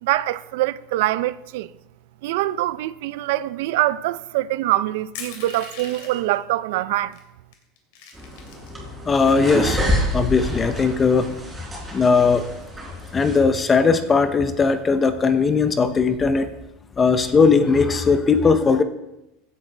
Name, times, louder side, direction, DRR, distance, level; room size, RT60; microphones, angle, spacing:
voice 1, 0.0-1.7 2.2-7.2, right 15 dB, 75° right, 0.5 m, -24 dB
Crushing, 5.1-6.3 7.1-7.2 7.5-8.7 9.2-10.3, left 6 dB, 75° left, 2.8 m, -40 dB
sound 1, 8.1-13.4, equal, 10° right, 4.1 m, -27 dB
voice 2, 9.1-9.8 10.1-11.4 11.9-12.5 13.1-16.5 17.0-18.8, left 5 dB, 20° left, 0.6 m, -18 dB
16.0 x 8.4 x 3.4 m
supercardioid pair, 140°, 0 cm